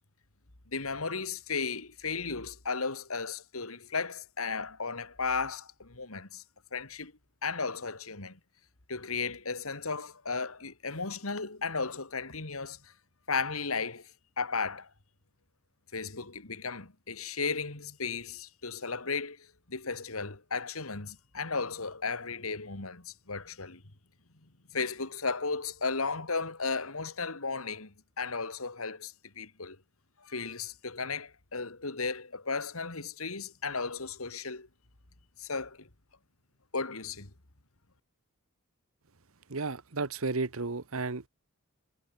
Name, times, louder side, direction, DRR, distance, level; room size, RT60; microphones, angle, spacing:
voice 1, 0.7-6.4 6.7-7.1 7.4-8.4 8.9-12.9 13.3-14.1 14.4-14.9 15.9-23.8 24.7-29.8 30.2-34.7 35.4-35.9 36.7-37.3, left 4 dB, 75° left, 2.8 m, -35 dB
voice 2, 39.5-41.3, right 3 dB, 70° right, 1.2 m, -33 dB
head